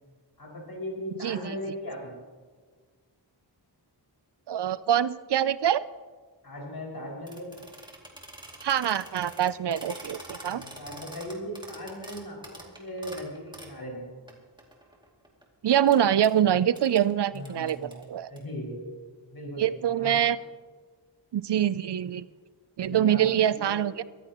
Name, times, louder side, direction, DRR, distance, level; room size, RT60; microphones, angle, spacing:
voice 1, 0.4-2.1 6.4-7.7 10.5-14.4 17.3-18.0 18.3-20.2 22.8-23.7, equal, 55° left, -2 dB, 5.9 m, -38 dB
voice 2, 4.5-5.9 8.6-10.6 15.6-18.3 19.6-20.4 21.3-22.2 22.8-24.0, right 10 dB, 70° right, 16 dB, 0.5 m, -24 dB
sound 1, 7.3-13.8 14.3-14.4 14.6-15.4 15.9-16.0 16.2-16.3 16.7-17.0 17.3-18.4, right 1 dB, 10° right, 2.5 m, -45 dB
24.0 x 14.0 x 3.0 m, 1.5 s
wide cardioid pair, 100°, 43 cm